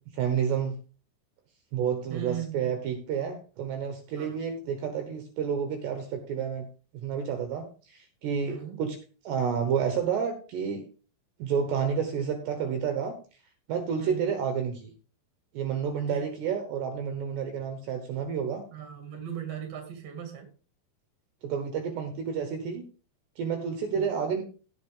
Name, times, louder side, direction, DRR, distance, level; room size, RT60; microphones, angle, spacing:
voice 1, 0.1-0.8 1.7-6.7 6.9-9.0 9.2-10.9 11.4-13.2 13.7-14.9 15.5-18.6 21.4-22.8 23.4-24.4, right 7 dB, 70° right, 3.0 m, -30 dB
voice 2, 2.1-2.8 4.1-4.4 8.4-8.8 14.0-14.3 16.1-16.3 18.7-20.5 23.9-24.1, right 9 dB, 40° right, 2.7 m, -38 dB
17.0 x 6.0 x 3.7 m
omnidirectional pair, 5.6 m